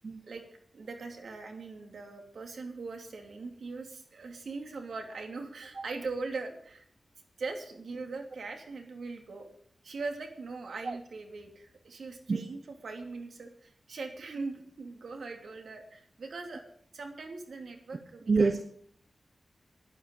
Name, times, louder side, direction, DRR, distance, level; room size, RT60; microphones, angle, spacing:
voice 1, 0.7-6.8 7.4-9.5 9.8-16.6 16.9-18.5, right 3 dB, 85° right, 4 dB, 3.0 m, -41 dB
voice 2, 18.3-18.6, right 4 dB, 50° right, 10 dB, 0.9 m, -25 dB
11.5 x 11.5 x 8.4 m, 0.63 s
wide cardioid pair, 105°, 0 cm